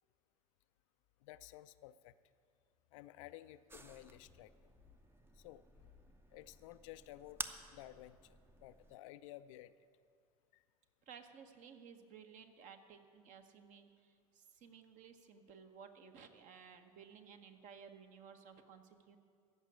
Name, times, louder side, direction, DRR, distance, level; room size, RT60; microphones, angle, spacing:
voice 1, 1.2-2.1 2.9-4.7 5.4-5.6 6.3-7.4 7.7-9.7 10.5-10.6, left 14 dB, 60° left, 13 dB, 0.4 m, -54 dB
sound 1, 3.7-9.0, right 2 dB, 10° right, 0.7 m, -52 dB
voice 2, 11.1-13.9 14.3-19.2, right 7 dB, 45° right, 7 dB, 1.1 m, -56 dB
15.0 x 6.0 x 8.7 m, 2.2 s
figure-of-eight pair, 75°, 19 cm